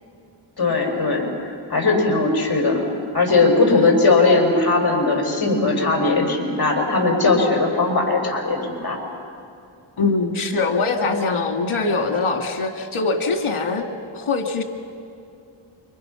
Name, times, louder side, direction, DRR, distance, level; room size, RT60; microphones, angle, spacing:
voice 1, 0.6-1.3 1.7-2.9 3.1-9.0, left 3 dB, 50° left, 0 dB, 6.6 m, -19 dB
voice 2, 10.0-13.9 14.1-14.6, left 3 dB, 80° left, 4 dB, 2.4 m, -22 dB
29.0 x 25.0 x 5.8 m, 2.6 s
cardioid pair, 55°, 48 cm